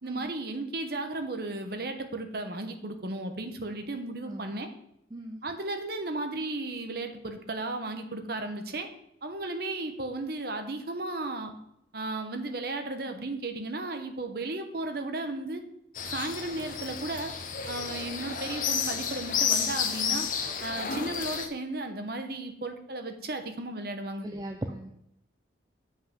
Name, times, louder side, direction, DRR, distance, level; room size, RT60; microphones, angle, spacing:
voice 1, 0.0-4.7 5.4-8.9 9.2-11.5 11.9-15.6 16.0-17.3 17.7-20.3 20.6-24.3, right 2 dB, 55° right, 6 dB, 1.0 m, -35 dB
voice 2, 4.3-4.6 5.1-5.4 24.2-24.9, right 1 dB, 20° right, 4 dB, 0.5 m, -38 dB
sound 1, 15.9-21.5, left 6 dB, 45° left, 1.0 m, -31 dB
7.6 x 5.5 x 5.9 m, 0.79 s
head